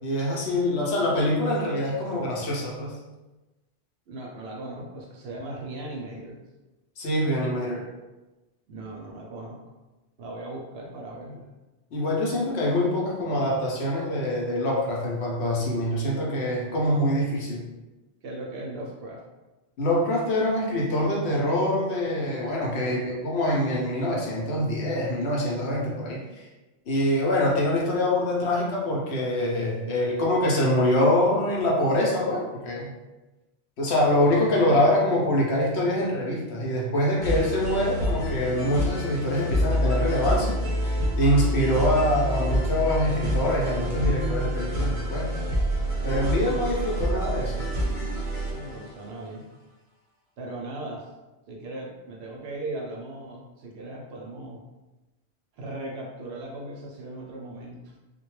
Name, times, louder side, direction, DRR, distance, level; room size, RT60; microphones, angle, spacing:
voice 1, 0.0-2.9 7.0-7.8 11.9-17.7 19.8-26.5 26.9-32.9 33.8-40.6 41.1-45.3 46.0-47.6, left 1 dB, 70° left, -3 dB, 0.9 m, -24 dB
voice 2, 4.1-6.4 8.7-9.6 10.2-11.5 18.2-19.2 22.7-23.2 48.5-49.4 50.4-51.1 51.5-54.6 55.5-57.9, right 2 dB, 70° right, -1 dB, 0.8 m, -38 dB
sound 1, 37.2-49.0, equal, 35° right, 0.6 m, -27 dB
2.2 x 2.1 x 3.0 m, 1.1 s
omnidirectional pair, 1.2 m